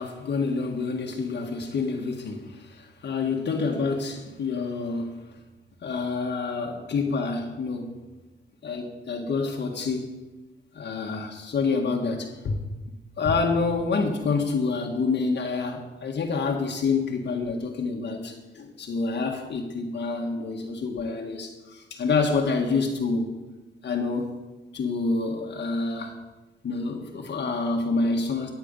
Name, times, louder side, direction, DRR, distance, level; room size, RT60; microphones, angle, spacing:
voice 1, 0.0-5.2 5.8-7.9 8.6-10.1 10.7-12.6 13.2-23.3 23.8-24.3 24.7-26.2 26.6-28.5, left 4 dB, 55° left, 1 dB, 1.7 m, -27 dB
14.0 x 9.0 x 5.5 m, 1.1 s
cardioid pair, 100°, 21 cm